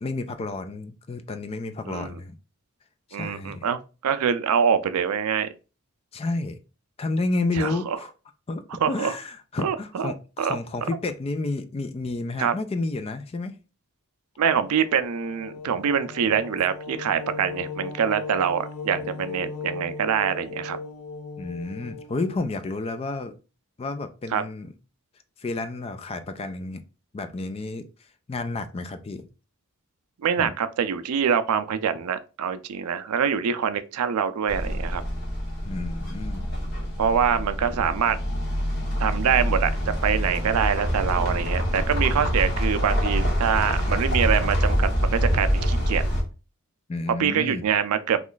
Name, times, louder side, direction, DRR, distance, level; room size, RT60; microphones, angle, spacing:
voice 1, 0.0-2.3 3.1-3.7 6.1-6.6 7.0-8.1 8.5-8.6 8.9-13.6 21.4-23.3 23.8-24.7 25.4-26.8 27.1-27.9 28.3-29.2 30.4-30.5 35.6-36.5 46.9-47.6, left 3 dB, 25° left, 0.3 m, -30 dB
voice 2, 3.1-5.5 7.6-8.0 8.7-9.2 9.6-10.1 10.4-10.6 12.4-12.5 14.4-20.8 24.3-24.4 30.2-35.0 37.0-38.2 39.0-39.7 40.0-46.0 47.2-48.2, right 7 dB, 90° right, 0.4 m, -25 dB
sound 1, 14.4-22.4, left 4 dB, 80° left, 0.7 m, -37 dB
sound 2, 34.5-46.2, equal, 50° left, 1.2 m, -25 dB
3.0 x 2.4 x 3.8 m
head